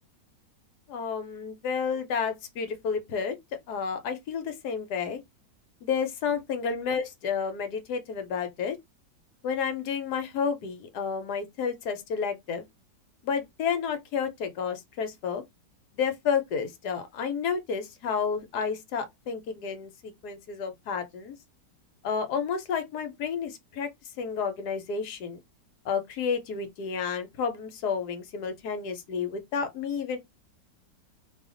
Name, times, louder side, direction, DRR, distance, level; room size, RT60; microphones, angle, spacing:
voice 1, 0.9-3.3 3.7-5.2 5.8-8.8 9.4-12.6 13.2-15.4 15.9-21.3 22.0-23.9 24.2-25.4 25.8-30.2, left 6 dB, 70° left, 1.2 m, -31 dB
2.7 x 2.4 x 3.6 m
omnidirectional pair, 1.9 m